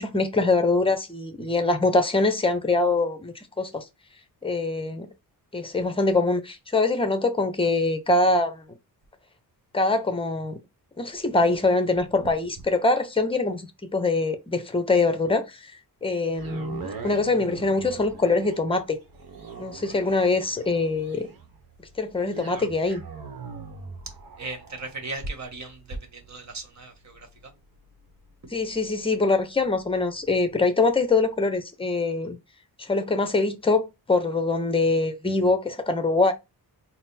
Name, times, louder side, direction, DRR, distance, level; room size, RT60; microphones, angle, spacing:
voice 1, 0.0-3.8 4.4-5.1 5.5-8.6 9.7-10.6 11.0-15.6 16.0-19.0 19.6-21.3 22.0-23.0 28.5-32.4 32.8-36.3, left 3 dB, 15° left, 0.7 m, -23 dB
sound 1, 16.3-30.5 31.0-31.1, right 5 dB, 60° right, 1.0 m, -43 dB
voice 2, 24.4-27.5, right 2 dB, 45° right, 1.4 m, -37 dB
4.1 x 2.1 x 4.1 m
wide cardioid pair, 105°, 38 cm